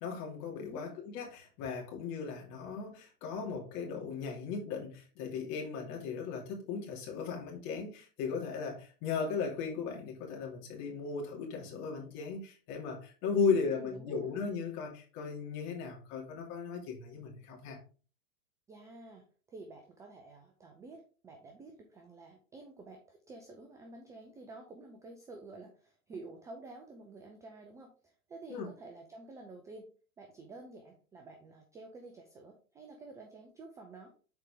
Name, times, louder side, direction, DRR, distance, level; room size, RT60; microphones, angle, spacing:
voice 1, 0.0-17.8 28.5-28.7, left 5 dB, 40° left, 2.8 m, -36 dB
voice 2, 13.5-14.4 18.7-29.8 30.2-34.1, right 3 dB, 10° right, 0.4 m, -50 dB
6.8 x 4.7 x 3.6 m
hypercardioid pair, 120°, 44 cm